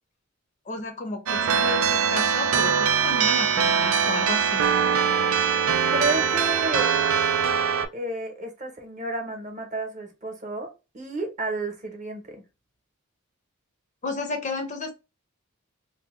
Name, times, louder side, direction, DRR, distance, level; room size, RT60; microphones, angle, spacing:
voice 1, 0.7-4.6 14.0-14.9, left 2 dB, 35° left, 0.5 m, -32 dB
sound 1, 1.3-7.9, right 7 dB, 85° right, 0.4 m, -22 dB
voice 2, 5.9-7.0 7.9-12.4, right 2 dB, 35° right, 0.8 m, -31 dB
2.7 x 2.1 x 3.5 m
head